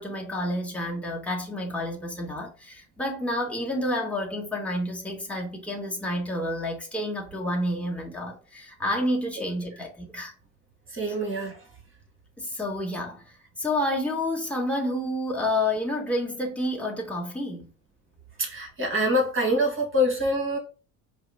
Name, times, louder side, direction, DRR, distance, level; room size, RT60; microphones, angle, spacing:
voice 1, 0.0-10.3 12.4-17.7, left 1 dB, 5° left, 1.3 m, -29 dB
voice 2, 10.9-11.5 18.4-20.6, equal, 30° right, 1.8 m, -25 dB
4.8 x 2.2 x 3.9 m
hypercardioid pair, 70°, 42 cm